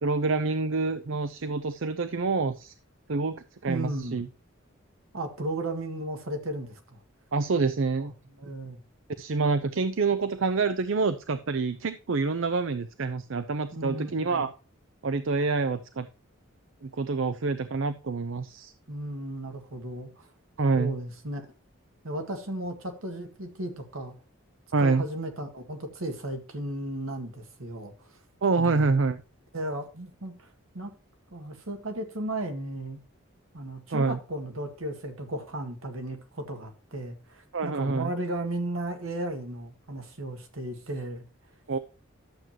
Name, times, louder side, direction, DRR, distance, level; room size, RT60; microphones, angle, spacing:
voice 1, 0.0-2.7 3.1-4.3 7.3-8.1 9.2-14.5 15.0-16.1 16.8-18.7 20.6-20.9 24.7-25.0 28.4-29.2 33.9-34.2 37.5-38.1 41.7-41.8, right 4 dB, 65° right, 0.6 m, -27 dB
voice 2, 3.7-4.2 5.1-7.0 8.0-8.8 13.7-14.5 18.9-20.3 20.7-21.5 22.0-24.1 24.8-28.2 28.6-28.9 29.5-30.9 31.3-33.0 33.5-41.2, right 1 dB, 85° right, 1.8 m, -35 dB
11.5 x 7.6 x 2.9 m
head